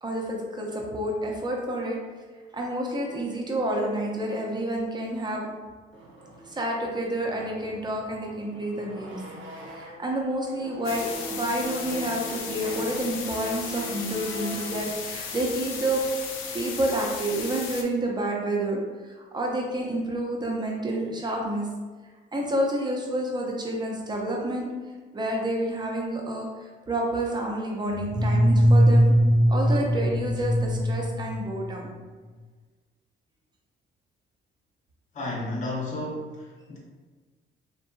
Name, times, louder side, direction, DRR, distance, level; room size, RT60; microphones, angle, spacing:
voice 1, 0.0-2.0 2.5-5.5 6.5-9.2 9.7-16.0 16.5-21.7 22.3-24.7 25.1-29.1 29.5-31.9, right 1 dB, 20° right, -1 dB, 0.6 m, -29 dB
sound 1, 5.9-10.1 10.5-14.9, right 1 dB, 75° right, 0.7 m, -41 dB
sound 2, 10.8-17.8, left 6 dB, 85° left, 0.4 m, -36 dB
sound 3, 27.9-32.0, equal, 70° left, 0.9 m, -21 dB
voice 2, 35.1-36.8, left 2 dB, 40° left, -3 dB, 0.6 m, -32 dB
2.6 x 2.2 x 2.6 m, 1.4 s
cardioid pair, 90°, 20 cm